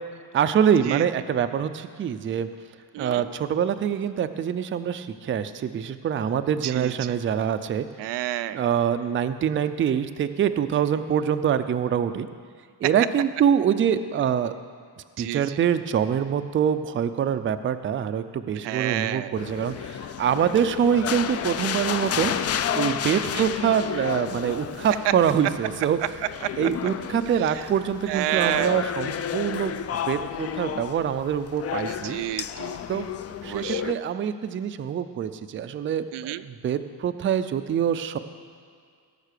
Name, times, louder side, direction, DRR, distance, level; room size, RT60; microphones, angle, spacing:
voice 1, 0.3-2.5 3.0-7.9 8.5-12.3 12.8-14.5 15.2-22.3 22.7-26.2 26.6-32.2 32.9-33.1 33.4-38.2, right 8 dB, 30° right, 10 dB, 0.4 m, -25 dB
voice 2, 2.9-3.3 6.6-6.9 8.0-8.6 15.2-15.4 18.6-19.3 23.3-23.4 28.1-28.8 31.9-32.8 33.4-33.8 36.1-36.4, right 14 dB, 90° right, 12 dB, 0.5 m, -29 dB
sound 1, 19.4-33.9, left 8 dB, 40° left, 0.4 m, -31 dB
17.0 x 6.6 x 6.6 m, 2.1 s
cardioid pair, 165°, 40 cm